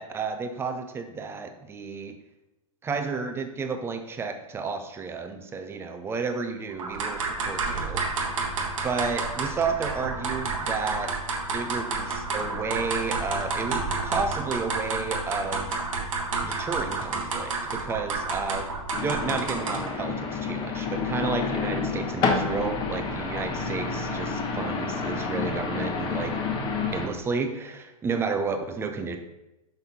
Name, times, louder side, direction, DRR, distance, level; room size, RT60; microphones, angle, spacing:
voice 1, 0.0-2.2 2.8-8.0 8.8-11.1 11.5-15.8 16.4-18.7 19.0-26.4 26.9-29.2, right 4 dB, 15° right, 7 dB, 0.6 m, -31 dB
sound 1, 6.8-20.0, right 3 dB, 60° right, 1.3 m, -30 dB
sound 2, 18.9-27.1, left 4 dB, 25° left, 1.1 m, -29 dB
6.3 x 5.2 x 4.2 m, 0.93 s
figure-of-eight pair, 100°, 19 cm